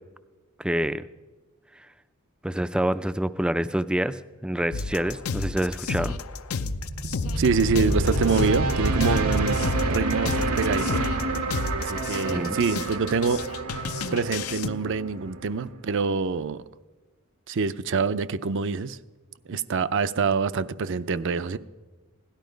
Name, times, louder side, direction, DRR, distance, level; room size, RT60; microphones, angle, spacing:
voice 1, 0.6-1.0 2.4-6.2 12.3-12.6, right 1 dB, 5° right, 13 dB, 0.3 m, -27 dB
sound 1, 4.7-14.7, left 4 dB, 80° left, 0.6 m, -32 dB
sound 2, 6.7-15.8, right 2 dB, 90° right, 1.2 m, -28 dB
voice 2, 7.3-9.6 9.9-11.0 11.8-13.5 14.1-16.6 17.5-19.0 19.5-21.6, right 5 dB, 60° right, 13 dB, 0.5 m, -26 dB
17.0 x 11.5 x 5.1 m, 1.3 s
head